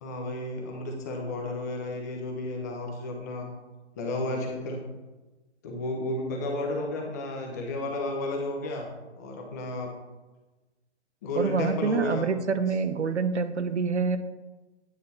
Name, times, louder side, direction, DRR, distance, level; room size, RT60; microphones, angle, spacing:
voice 1, 0.0-3.5 4.0-4.8 5.6-8.9 9.2-9.9 11.2-12.3, left 2 dB, 15° left, 1 dB, 0.8 m, -32 dB
voice 2, 11.4-14.2, right 5 dB, 80° right, 11 dB, 0.9 m, -26 dB
9.3 x 6.2 x 4.2 m, 1.2 s
hypercardioid pair, 160°, 34 cm